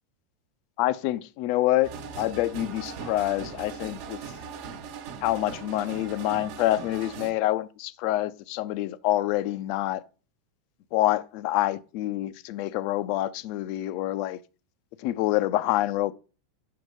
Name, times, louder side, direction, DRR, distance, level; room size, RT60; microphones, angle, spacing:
voice 1, 0.8-1.9 2.2-4.0 5.2-10.0 10.9-14.4 15.0-16.1, left 15 dB, 50° left, 0.6 m, -26 dB
sound 1, 1.8-7.3, right 6 dB, 50° right, 1.2 m, -39 dB
6.6 x 5.9 x 5.4 m
figure-of-eight pair, 85°, 0 cm